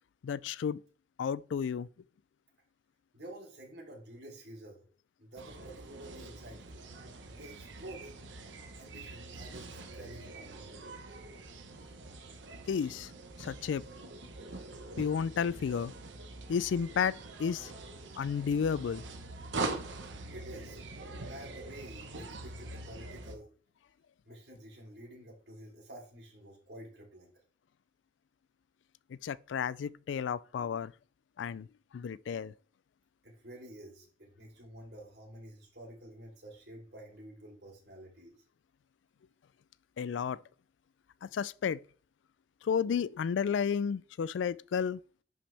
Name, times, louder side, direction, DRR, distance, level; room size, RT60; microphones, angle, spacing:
voice 1, 0.2-0.8 1.2-1.9 12.7-13.1 13.4-13.8 15.0-15.9 16.5-17.7 18.2-19.0 29.2-30.9 31.4-31.7 31.9-32.5 40.0-40.4 41.2-41.8 42.6-45.0, left 7 dB, 85° left, 0.3 m, -32 dB
voice 2, 3.1-4.8 5.2-6.9 7.2-8.2 8.8-10.5 20.3-20.8 21.3-23.5 24.3-27.3 33.2-38.3, right 1 dB, 60° right, 3.4 m, -50 dB
sound 1, 5.4-23.4, right 3 dB, 90° right, 1.1 m, -44 dB
10.5 x 5.7 x 3.4 m
head